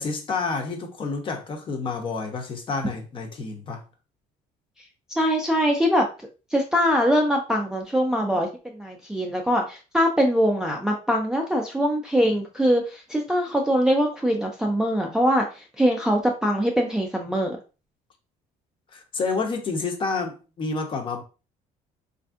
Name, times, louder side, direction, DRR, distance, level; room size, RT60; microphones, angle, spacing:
voice 1, 0.0-3.8 18.9-21.2, left 4 dB, 35° left, 0.6 m, -29 dB
voice 2, 5.2-6.1 6.5-17.6, equal, 5° right, 0.3 m, -23 dB
3.4 x 2.5 x 2.3 m
cardioid pair, 145°, 15 cm